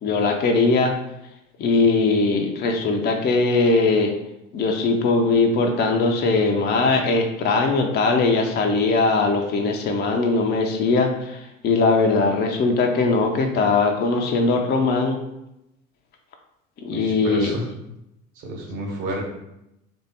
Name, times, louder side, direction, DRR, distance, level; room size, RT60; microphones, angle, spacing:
voice 1, 0.0-0.9 1.6-4.1 4.5-15.2 16.8-17.5, left 3 dB, 25° left, 3 dB, 0.5 m, -20 dB
voice 2, 16.9-17.7 18.3-19.2, right 1 dB, 50° right, 0 dB, 1.2 m, -30 dB
3.3 x 2.6 x 4.1 m, 0.86 s
figure-of-eight pair, 60°, 40 cm